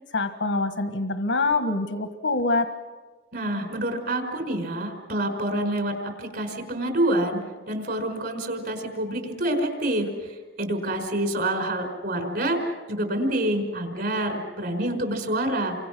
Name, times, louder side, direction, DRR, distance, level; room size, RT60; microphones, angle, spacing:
voice 1, 0.1-2.7, left 3 dB, 80° left, 8 dB, 1.5 m, -25 dB
voice 2, 3.3-15.8, right 1 dB, 60° right, 4 dB, 5.2 m, -27 dB
30.0 x 25.0 x 6.2 m, 1.3 s
head